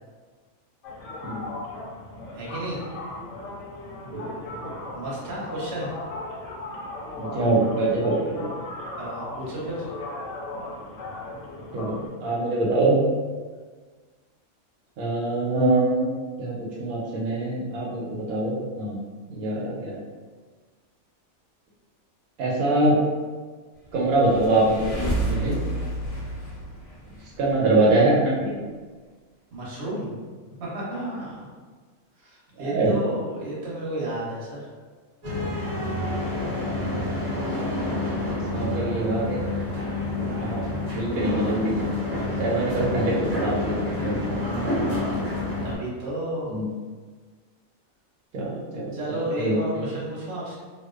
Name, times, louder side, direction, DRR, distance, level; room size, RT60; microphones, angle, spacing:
sound 1, 0.8-12.1, left 2 dB, 70° left, 0.8 m, -37 dB
voice 1, 2.3-2.8 4.9-5.9 9.0-9.9 25.5-25.8 29.5-30.1 30.6-31.5 32.2-34.7 42.7-42.8 44.3-45.3 45.6-46.6 48.9-50.6, right 1 dB, 60° right, -6 dB, 1.0 m, -32 dB
voice 2, 4.1-4.6 7.1-8.5 11.7-13.0 15.0-16.1 16.4-19.0 19.3-19.9 22.4-23.0 23.9-25.6 27.4-28.5 32.6-32.9 36.6-37.1 38.3-39.4 40.4-40.6 40.9-41.8 42.4-44.2 46.5-46.7 48.3-49.6, right 2 dB, 90° right, -5 dB, 1.1 m, -24 dB
sound 2, 24.0-27.6, right 1 dB, 55° left, 0.4 m, -30 dB
sound 3, 35.2-45.8, left 2 dB, 40° right, 0.6 m, -28 dB
2.5 x 2.2 x 2.3 m, 1.4 s
omnidirectional pair, 1.4 m